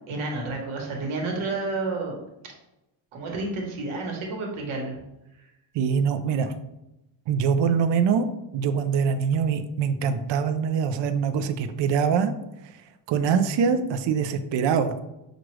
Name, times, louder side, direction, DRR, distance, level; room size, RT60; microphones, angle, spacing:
voice 1, 0.1-2.2 3.1-5.0, right 3 dB, 90° right, 0 dB, 1.2 m, -30 dB
voice 2, 5.7-6.5 7.3-8.3 8.5-12.3 13.1-14.9, right 6 dB, 65° right, 9 dB, 0.5 m, -23 dB
6.0 x 2.4 x 3.1 m, 0.92 s
cardioid pair, 100°, 47 cm